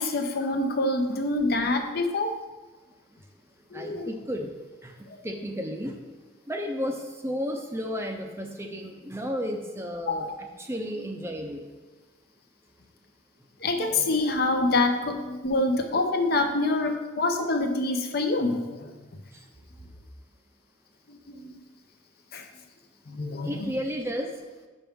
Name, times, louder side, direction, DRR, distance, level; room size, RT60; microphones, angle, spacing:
voice 1, 0.0-2.4 3.7-4.1 5.1-5.2 10.1-10.4 13.6-18.9 21.1-21.6 22.3-22.4 23.1-23.5, left 2 dB, 50° left, 5 dB, 0.7 m, -26 dB
voice 2, 3.7-4.5 4.8-4.9 5.2-6.0 6.5-10.3 10.6-11.6 23.4-24.3, equal, 15° right, 3 dB, 0.6 m, -32 dB
7.9 x 6.0 x 3.6 m, 1.3 s
head